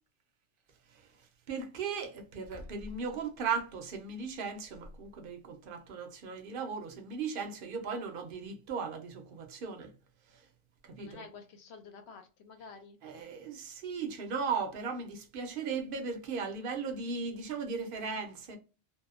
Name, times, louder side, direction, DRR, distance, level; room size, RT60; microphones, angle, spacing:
voice 1, 0.9-9.9 10.3-10.5 10.8-11.3 13.0-18.6, right 5 dB, 55° right, 0.7 m, -37 dB
voice 2, 11.0-13.0, left 5 dB, 65° left, 0.8 m, -50 dB
2.7 x 2.0 x 2.3 m
omnidirectional pair, 1.3 m